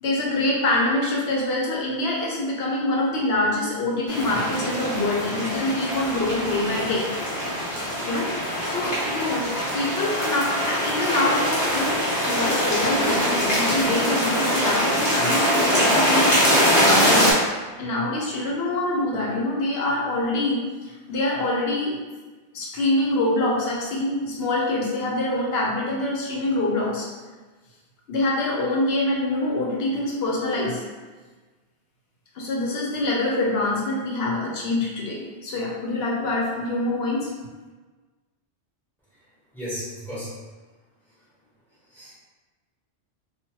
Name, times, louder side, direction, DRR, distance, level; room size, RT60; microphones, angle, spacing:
voice 1, 0.0-7.1 8.1-8.3 8.6-22.0 22.5-27.1 28.1-30.8 32.3-37.3, left 2 dB, 70° left, -3 dB, 0.8 m, -25 dB
sound 1, 4.1-17.3, equal, 30° left, 1.1 m, -23 dB
voice 2, 39.5-40.3 41.9-42.1, equal, ahead, -10 dB, 1.0 m, -34 dB
2.8 x 2.3 x 2.9 m, 1.3 s
omnidirectional pair, 1.1 m